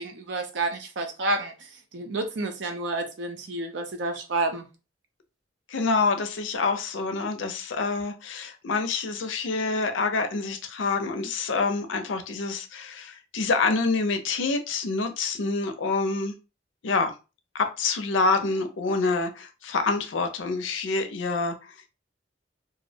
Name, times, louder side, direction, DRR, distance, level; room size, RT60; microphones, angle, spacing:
voice 1, 0.0-4.7, right 2 dB, 70° right, 0.5 m, -30 dB
voice 2, 5.7-16.3 16.8-17.1 17.5-21.5, left 3 dB, 85° left, 0.5 m, -27 dB
2.4 x 2.0 x 2.7 m
head